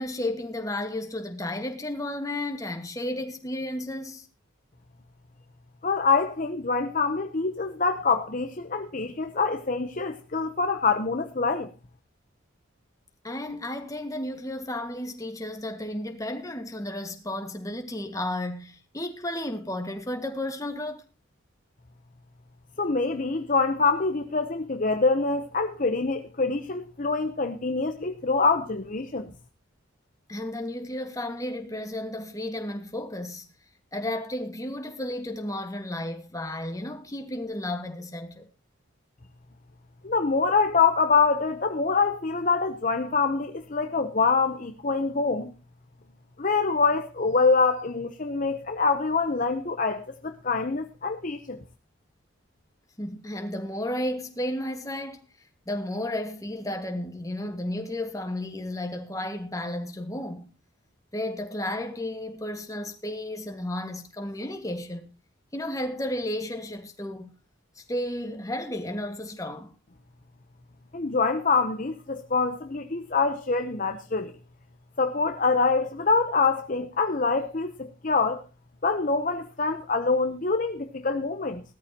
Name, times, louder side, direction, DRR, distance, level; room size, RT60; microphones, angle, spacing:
voice 1, 0.0-4.3 13.2-21.0 30.3-33.5 33.9-38.5 53.0-55.2 55.7-60.5 61.1-65.1 65.5-67.3 67.8-69.8, left 1 dB, 15° left, 1.7 m, -33 dB
voice 2, 5.8-11.7 22.8-29.3 40.0-45.5 46.4-51.6 70.9-74.3 75.0-78.4 78.8-81.6, left 4 dB, 40° left, 0.8 m, -25 dB
17.5 x 13.0 x 2.9 m
head